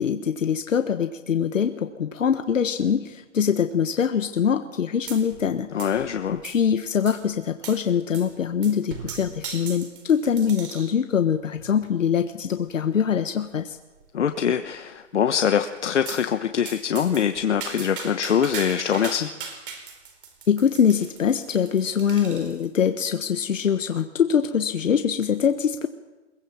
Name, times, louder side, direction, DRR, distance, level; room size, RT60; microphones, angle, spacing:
voice 1, 0.0-5.9 6.3-13.8 20.5-25.9, left 7 dB, 80° left, 8 dB, 1.4 m, -23 dB
sound 1, 5.1-5.5 5.8-6.7 7.0-7.2 7.6-7.8 8.1-8.3 8.6-11.0 11.6-11.9 12.6-12.7 13.0-13.1 13.4-13.5 13.9-14.4 16.0-16.3 16.6-22.7, right 5 dB, 45° right, 4.3 m, -38 dB
voice 2, 5.7-6.4 14.1-19.3, left 8 dB, 65° left, 8 dB, 1.3 m, -23 dB
22.0 x 19.0 x 7.3 m, 1.2 s
hypercardioid pair, 170°, 38 cm